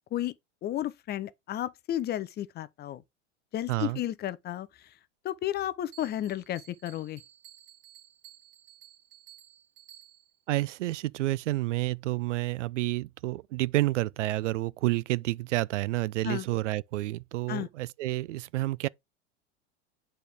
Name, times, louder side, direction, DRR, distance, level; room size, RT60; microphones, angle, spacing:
voice 1, 0.6-3.0 3.5-4.7 5.2-7.2 16.2-16.5 17.5-17.7, left 12 dB, 30° left, 0.6 m, -33 dB
voice 2, 3.7-4.0 10.5-18.9, right 17 dB, 80° right, 0.5 m, -29 dB
Bell, 5.9-10.4, right 13 dB, 55° right, 2.5 m, -55 dB
8.2 x 4.4 x 3.4 m
hypercardioid pair, 105°, 36 cm